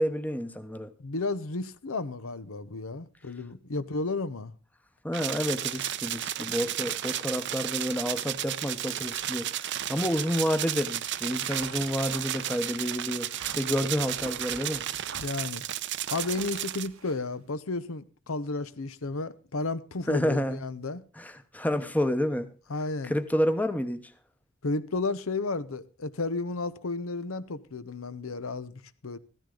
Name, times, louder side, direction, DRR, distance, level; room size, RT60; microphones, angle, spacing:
voice 1, 0.0-0.9 5.0-14.8 20.1-20.6 21.2-22.5 23.0-24.0, equal, 10° left, 0.9 m, -29 dB
voice 2, 1.0-4.5 15.2-15.6 16.1-21.0 22.7-23.1 24.6-29.2, left 3 dB, 75° left, 0.8 m, -33 dB
sound 1, 5.1-16.9, right 12 dB, 60° right, 0.7 m, -33 dB
sound 2, 9.0-17.3, right 5 dB, 85° right, 1.3 m, -46 dB
15.0 x 13.5 x 3.8 m
head